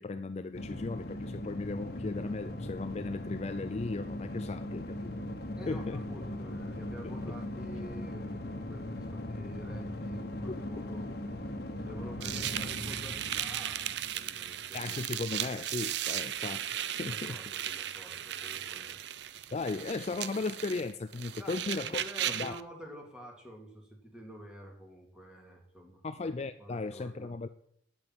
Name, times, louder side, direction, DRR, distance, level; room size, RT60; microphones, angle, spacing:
voice 1, 0.0-5.1 5.7-6.0 7.0-7.3 10.5-10.8 14.7-16.7 17.0-17.4 19.5-22.6 26.0-27.5, left 3 dB, 35° left, 11 dB, 0.4 m, -36 dB
sound 1, 0.5-14.9, left 1 dB, 55° left, 1.4 m, -39 dB
voice 2, 5.6-11.1 11.8-14.9 17.0-19.0 21.3-26.0 26.6-27.3, equal, 5° right, 1 dB, 2.4 m, -49 dB
sound 2, 12.2-22.6, right 11 dB, 65° right, 0.5 m, -36 dB
8.5 x 8.0 x 9.1 m, 0.72 s
head